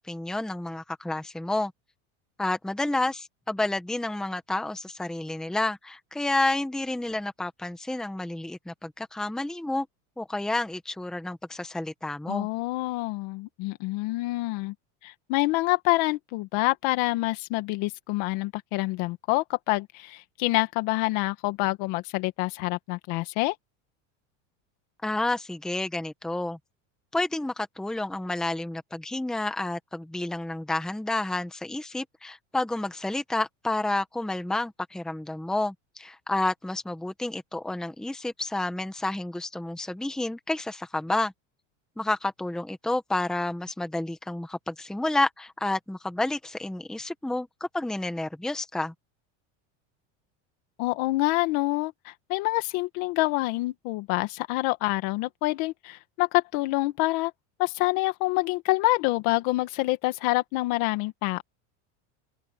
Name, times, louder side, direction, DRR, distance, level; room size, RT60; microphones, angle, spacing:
voice 1, 0.0-1.7 2.4-9.9 10.2-12.5 25.0-26.6 27.1-41.3 42.0-48.9, left 2 dB, ahead, 1.1 m, -30 dB
voice 2, 12.3-14.7 15.0-23.6 50.8-57.3 57.6-61.4, left 20 dB, 55° left, 1.9 m, -27 dB
open air
cardioid pair, 165°, 36 cm